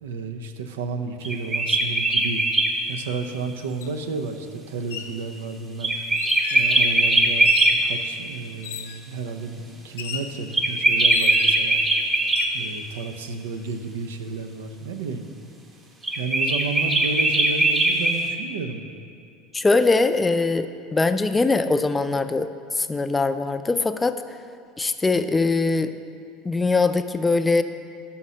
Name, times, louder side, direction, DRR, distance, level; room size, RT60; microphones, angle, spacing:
voice 1, 0.0-2.4 2.9-6.0 6.5-11.8 12.5-15.2 16.2-18.9, right 4 dB, 90° right, 7 dB, 0.5 m, -32 dB
sound 1, 1.2-2.7 5.8-7.7 10.5-12.5 16.0-18.2, right 2 dB, 25° right, 0.9 m, -20 dB
sound 2, 3.8-3.9 4.7-5.2 6.2-6.7 7.4-7.9 8.6-9.1 10.0-10.3 11.1-11.7 12.2-12.6, left 7 dB, 90° left, 0.5 m, -34 dB
voice 2, 19.5-22.5 22.8-24.2 24.8-25.9 26.4-27.6, left 3 dB, 15° left, 9 dB, 0.3 m, -21 dB
5.7 x 5.4 x 6.2 m, 2.4 s
supercardioid pair, 95°, 0 cm